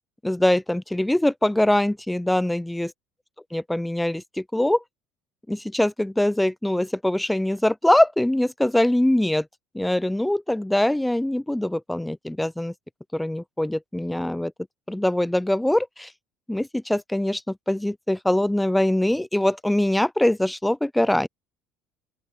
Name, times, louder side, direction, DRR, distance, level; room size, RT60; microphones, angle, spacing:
voice 1, 0.2-2.9 3.5-4.8 5.5-9.5 9.7-12.7 13.1-14.5 14.9-16.1 16.5-21.3, left 1 dB, 5° left, 0.4 m, -23 dB
open air
cardioid pair, 130°, 0 cm